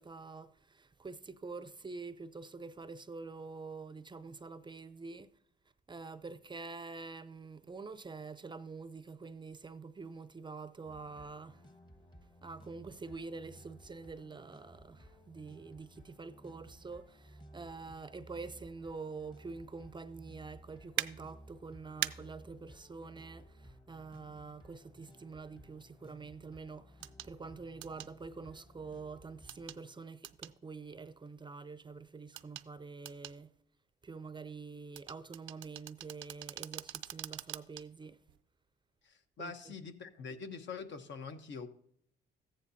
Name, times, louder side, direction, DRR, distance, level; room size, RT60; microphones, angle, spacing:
voice 1, 0.0-5.3 5.9-11.6 12.4-26.9 27.2-33.5 34.0-38.2 39.4-39.5, right 4 dB, 25° right, 0.5 m, -46 dB
sound 1, 10.8-29.7, equal, 20° left, 1.1 m, -57 dB
sound 2, 21.0-21.1 22.0-22.1 24.1-24.2 27.0-27.3 27.8-28.1 29.5-29.8 30.2-30.5 32.4-32.7 33.1-33.4 35.0-37.8 38.3-38.4, right 14 dB, 75° right, 0.4 m, -40 dB
voice 2, 39.0-41.7, left 5 dB, 65° left, 1.0 m, -44 dB
14.0 x 9.8 x 2.7 m
cardioid pair, 90°, 20 cm